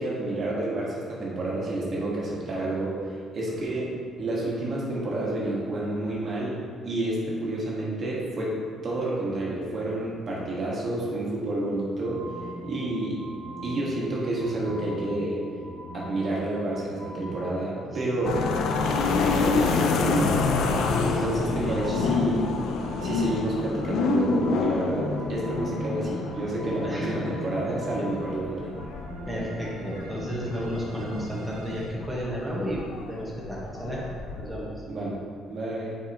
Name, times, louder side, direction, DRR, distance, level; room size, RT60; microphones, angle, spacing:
voice 1, 0.0-3.0 3.3-6.6 6.8-12.2 12.6-13.2 13.6-15.4 15.9-18.4 18.9-20.4 21.0-22.4 23.0-28.7 34.9-35.2 35.5-36.0, right 2 dB, 45° right, -5 dB, 1.6 m, -29 dB
sound 1, 12.0-31.9, equal, 85° right, 1.1 m, -41 dB
sound 2, 18.2-34.5, left 4 dB, 75° left, 0.5 m, -28 dB
voice 2, 21.1-22.2 26.8-27.8 29.3-34.7, equal, ahead, -6 dB, 1.4 m, -33 dB
7.0 x 4.9 x 3.0 m, 2.1 s
cardioid pair, 100°, 0 cm